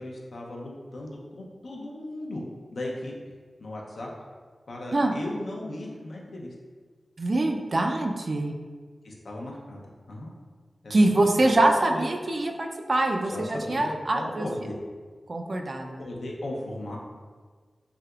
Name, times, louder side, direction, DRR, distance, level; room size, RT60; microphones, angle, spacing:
voice 1, 0.0-2.4 2.7-3.1 3.6-4.1 4.7-6.5 9.0-10.3 10.8-11.0 11.4-12.0 13.2-14.7 16.0-17.0, left 1 dB, 80° left, -2 dB, 0.5 m, -37 dB
voice 2, 7.2-8.5 10.9-14.5 15.3-16.0, right 2 dB, 55° right, 3 dB, 0.3 m, -24 dB
3.3 x 2.8 x 2.3 m, 1.5 s
cardioid pair, 50°, 0 cm